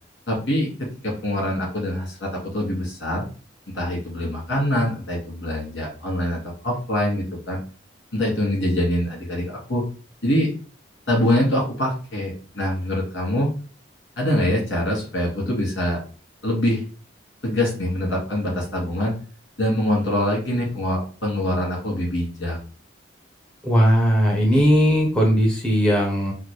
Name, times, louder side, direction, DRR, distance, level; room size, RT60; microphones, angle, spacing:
voice 1, 0.3-3.3 3.7-7.6 8.1-9.8 10.2-10.5 11.1-13.5 14.2-16.0 16.4-16.8 17.4-19.1 19.6-22.6, left 1 dB, 70° left, -2 dB, 2.1 m, -24 dB
voice 2, 23.6-26.3, equal, 5° left, -3 dB, 1.1 m, -18 dB
5.7 x 2.1 x 3.3 m, 0.38 s
head